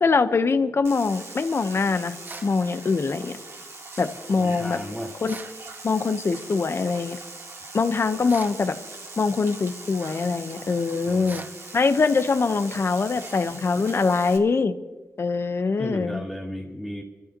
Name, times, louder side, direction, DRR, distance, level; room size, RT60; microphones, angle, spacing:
voice 1, 0.0-2.1 2.4-3.3 4.0-4.8 5.2-5.4 5.8-7.2 7.7-8.8 9.2-11.4 11.7-14.7 15.2-16.2, left 4 dB, 50° left, 10 dB, 1.1 m, -23 dB
sound 1, 0.8-14.4, right 3 dB, 60° right, 2.6 m, -41 dB
sound 2, 2.2-2.6 5.3-5.6 8.3-8.6 11.3-11.6, right 3 dB, 35° right, 0.9 m, -40 dB
voice 2, 4.3-5.1 11.1-11.5 15.8-17.0, equal, ahead, -6 dB, 2.5 m, -34 dB
29.0 x 13.0 x 3.0 m, 1.3 s
cardioid pair, 70°, 5 cm